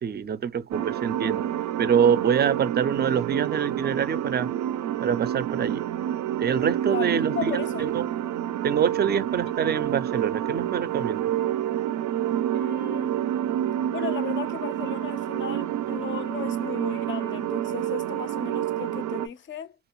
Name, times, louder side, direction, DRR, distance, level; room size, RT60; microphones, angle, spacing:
voice 1, 0.0-1.5 1.8-4.5 5.0-5.8 6.4-7.5 7.8-8.1 8.6-11.3, right 7 dB, 35° right, 0.4 m, -25 dB
sound 1, 0.7-19.3, right 11 dB, 90° right, 0.5 m, -28 dB
voice 2, 6.9-7.9 12.5-13.2 13.9-19.8, left 9 dB, 40° left, 0.4 m, -36 dB
2.4 x 2.3 x 2.9 m
cardioid pair, 90°, 30 cm